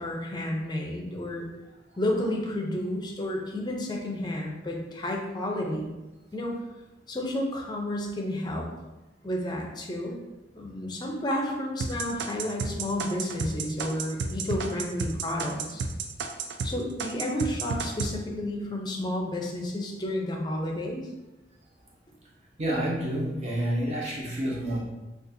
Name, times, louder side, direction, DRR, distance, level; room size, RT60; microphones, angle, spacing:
voice 1, 0.0-1.5 2.0-5.9 6.3-6.6 7.1-8.7 9.2-10.2 10.5-15.8 16.6-21.0, left 1 dB, 25° left, 0 dB, 0.5 m, -31 dB
sound 1, 11.8-16.7 17.0-18.1, right 4 dB, 75° right, 0.3 m, -31 dB
voice 2, 22.6-24.8, right 1 dB, 40° right, -5 dB, 0.8 m, -29 dB
3.9 x 2.4 x 2.6 m, 1.0 s
head